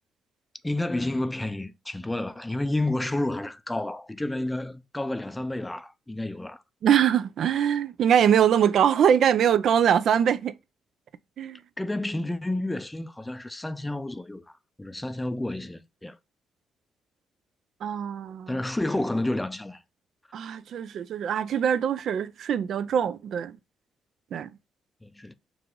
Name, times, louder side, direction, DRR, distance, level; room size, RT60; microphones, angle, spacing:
voice 1, 0.6-6.6 11.8-14.4 14.8-16.2 18.5-19.8 25.0-25.3, left 1 dB, 10° left, 0.4 m, -30 dB
voice 2, 6.8-10.6 11.4-11.6 17.8-18.6 20.3-23.6 24.3-24.5, right 9 dB, 65° right, 0.3 m, -23 dB
4.7 x 2.5 x 3.6 m
cardioid pair, 90°, 0 cm